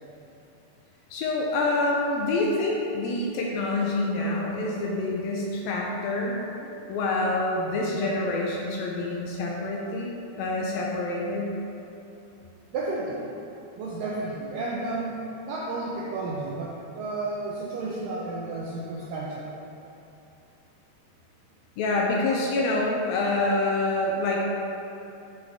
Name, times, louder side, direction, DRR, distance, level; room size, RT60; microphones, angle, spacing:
voice 1, 1.1-10.1 10.4-11.5 21.8-24.5, left 2 dB, 80° left, -2 dB, 2.2 m, -27 dB
voice 2, 12.7-13.3 13.8-19.5, right 2 dB, 85° right, -5 dB, 1.9 m, -32 dB
7.5 x 5.2 x 3.5 m, 2.8 s
omnidirectional pair, 4.6 m